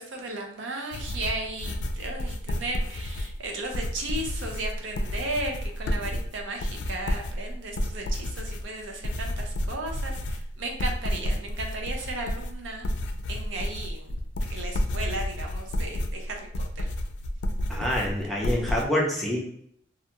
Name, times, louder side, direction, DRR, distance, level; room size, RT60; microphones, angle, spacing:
voice 1, 0.0-12.8 13.3-14.2 14.5-16.8, right 2 dB, 80° right, 2 dB, 0.6 m, -35 dB
sound 1, 0.9-18.8, left 1 dB, 65° left, 0.3 m, -31 dB
voice 2, 17.7-19.4, equal, ahead, -3 dB, 0.5 m, -26 dB
2.4 x 2.2 x 2.8 m, 0.68 s
head